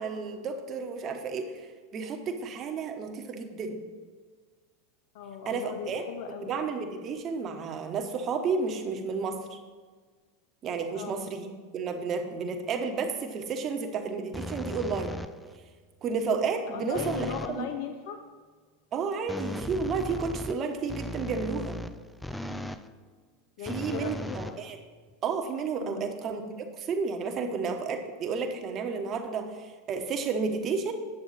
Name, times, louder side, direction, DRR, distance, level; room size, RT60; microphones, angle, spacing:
voice 1, 0.0-3.8 5.5-6.0 6.4-9.6 10.6-11.5 11.7-15.2 16.0-17.7 18.9-21.8 23.6-24.8 25.2-30.9, right 5 dB, 40° right, 4 dB, 1.1 m, -32 dB
voice 2, 5.1-6.6 10.9-11.2 16.7-18.2 22.4-22.8 23.6-24.6 25.8-26.1, left 7 dB, 65° left, 6 dB, 0.6 m, -38 dB
sound 1, 14.3-15.6 17.0-17.6 19.3-22.9 23.7-25.1, left 1 dB, 5° left, 0.4 m, -37 dB
8.9 x 6.8 x 4.1 m, 1.5 s
hypercardioid pair, 100°, 0 cm